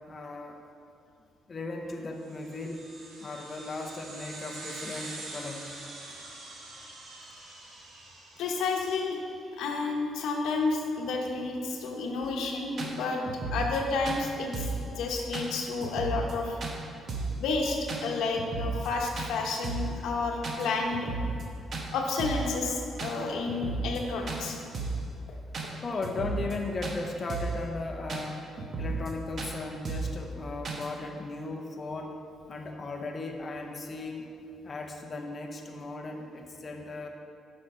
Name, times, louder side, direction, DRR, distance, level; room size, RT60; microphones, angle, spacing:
voice 1, 0.1-0.6 1.5-2.8 3.2-5.7 22.7-23.0 25.8-28.5 28.8-32.2 32.5-34.4 34.6-37.1, left 3 dB, 35° left, 2 dB, 0.7 m, -37 dB
sound 1, 2.2-9.1, right 2 dB, 80° right, 1.5 m, -45 dB
voice 2, 8.4-9.2 9.6-13.2 13.5-16.6 17.4-21.1 21.9-24.6, left 3 dB, 85° left, 1 dB, 0.9 m, -30 dB
sound 2, 12.2-12.3 12.8-12.9 13.2-13.8 14.0-14.2 14.5-14.8 15.3-15.5 15.8-16.3 16.6-16.7 17.1-17.4 17.9-18.0 18.4-18.9 19.2-19.3 19.6-19.9 20.4-20.6 20.9-21.4 21.7-21.9 22.2-22.5 23.0-23.1 23.5-24.0 24.3-24.4 24.7-25.0 25.5-25.7 26.0-26.5 26.8-27.0 27.3-27.6 28.1-28.2 28.6-29.1 29.4-29.5 29.8-30.2 30.6-30.9, right 3 dB, 45° right, 1.0 m, -33 dB
7.1 x 5.4 x 4.9 m, 2.7 s
cardioid pair, 90°, 0 cm